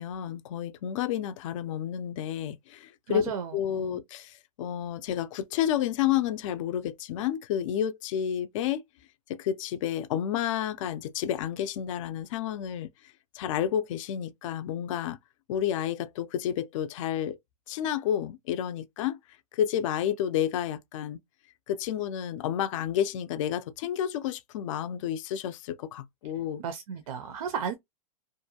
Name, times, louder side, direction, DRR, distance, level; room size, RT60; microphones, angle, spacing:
voice 1, 0.0-3.2 3.5-8.8 9.3-12.9 13.3-15.2 15.5-17.4 17.7-19.2 19.5-21.2 21.7-26.6, left 10 dB, 60° left, 0.4 m, -30 dB
voice 2, 3.1-4.0 26.6-27.7, right 7 dB, 70° right, 0.5 m, -34 dB
2.5 x 2.2 x 2.7 m
hypercardioid pair, 140°, 19 cm